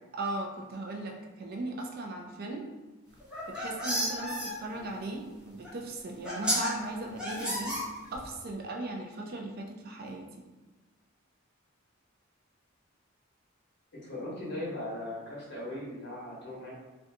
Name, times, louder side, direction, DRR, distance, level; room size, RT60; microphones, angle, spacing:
voice 1, 0.1-2.7 3.5-7.8 8.1-10.5, right 2 dB, 45° right, 2 dB, 0.4 m, -38 dB
sound 1, 3.2-4.5 5.6-5.7 6.2-6.7 7.2-8.3, equal, 5° right, 0.7 m, -31 dB
voice 2, 14.0-16.7, left 1 dB, 55° left, -6 dB, 0.9 m, -39 dB
2.5 x 2.2 x 2.7 m, 1.2 s
head